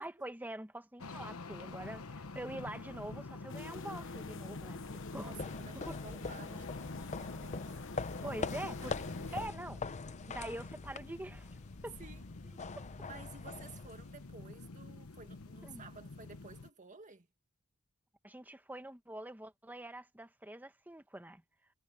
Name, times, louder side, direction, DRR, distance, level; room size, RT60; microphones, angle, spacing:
voice 1, 0.0-4.8 5.1-5.3 5.7-6.3 6.5-6.6 8.2-8.9 9.3-9.8 10.3-11.5 11.8-12.0 15.6-15.8 18.2-21.4, right 1 dB, 10° right, 1.3 m, -45 dB
sound 1, 1.0-16.7, left 3 dB, 85° left, 1.1 m, -48 dB
sound 2, 3.5-9.5, left 3 dB, 65° left, 1.2 m, -45 dB
sound 3, 4.8-14.4, left 4 dB, 35° left, 0.6 m, -44 dB
voice 2, 5.2-7.7 8.2-9.4 12.0-12.3 12.7-12.8 13.0-17.3, right 4 dB, 35° right, 2.1 m, -54 dB
head